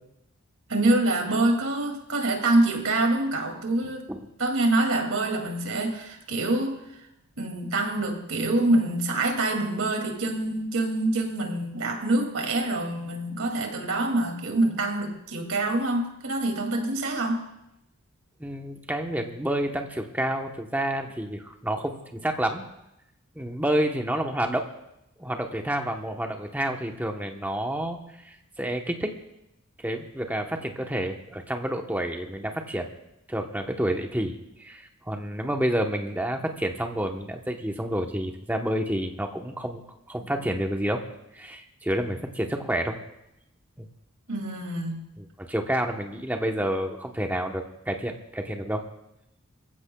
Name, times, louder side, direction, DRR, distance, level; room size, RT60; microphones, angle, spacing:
voice 1, 0.7-4.0 4.4-6.8 7.4-17.4 44.3-45.0, right 2 dB, 70° right, 3 dB, 2.5 m, -25 dB
voice 2, 18.4-22.6 23.3-24.6 25.2-29.1 29.8-32.9 33.3-39.8 40.1-41.0 41.3-43.0 43.8-43.9 45.2-48.8, right 1 dB, 10° right, 3 dB, 1.0 m, -29 dB
24.5 x 15.0 x 2.3 m, 0.85 s
head